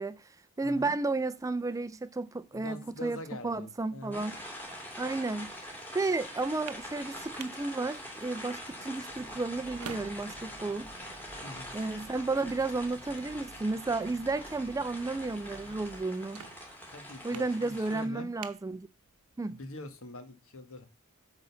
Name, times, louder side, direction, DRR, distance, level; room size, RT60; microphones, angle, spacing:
voice 1, 0.0-4.4 5.0-5.5 5.9-10.9 11.7-16.5 17.2-18.9 19.4-19.6, right 3 dB, 15° right, 0.4 m, -33 dB
voice 2, 0.6-0.9 2.5-4.2 11.4-11.7 16.9-18.3 19.4-20.9, left 1 dB, 65° left, 1.4 m, -44 dB
sound 1, 4.1-18.0, equal, 10° left, 2.5 m, -44 dB
sound 2, 9.1-16.0, right 2 dB, 50° right, 1.1 m, -53 dB
sound 3, 16.2-19.5, right 7 dB, 85° right, 0.8 m, -52 dB
8.4 x 3.9 x 6.8 m
head